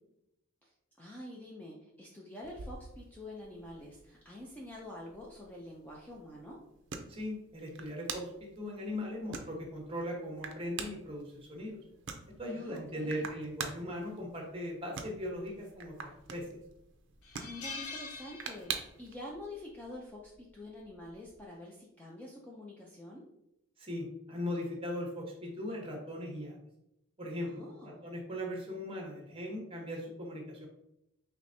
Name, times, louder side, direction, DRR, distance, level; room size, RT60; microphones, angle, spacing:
voice 1, 0.6-6.6 12.5-13.4 17.4-23.2 27.4-28.0, left 1 dB, 5° left, -3 dB, 0.4 m, -47 dB
sound 1, 2.4-19.2, right 6 dB, 55° right, 0.5 m, -46 dB
voice 2, 7.1-11.8 12.4-16.5 23.8-26.6 27.2-30.7, left 1 dB, 25° right, 0 dB, 1.0 m, -39 dB
sound 2, 15.8-16.3 16.7-16.8 17.2-19.0 19.3-19.6 20.8-21.1, left 4 dB, 80° left, 0.7 m, -44 dB
4.8 x 3.3 x 2.6 m, 0.83 s
head